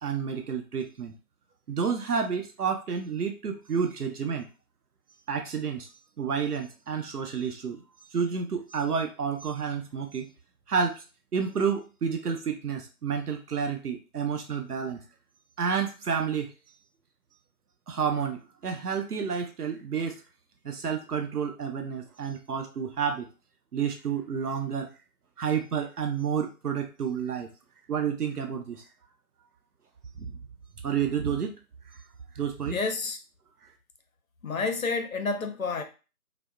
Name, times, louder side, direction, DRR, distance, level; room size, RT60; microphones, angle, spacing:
voice 1, 0.0-1.1 1.7-4.5 5.3-5.9 6.2-7.8 8.1-10.3 10.7-11.0 11.3-15.0 15.6-16.5 17.9-20.2 20.6-23.3 23.7-24.9 25.4-27.5 27.9-28.8 30.2-30.4 30.8-31.5 32.3-32.8, right 6 dB, 80° right, 0.6 m, -30 dB
voice 2, 32.7-33.2 34.4-35.8, left 4 dB, 65° left, 0.5 m, -29 dB
2.7 x 2.0 x 2.3 m
figure-of-eight pair, 170°, 45 cm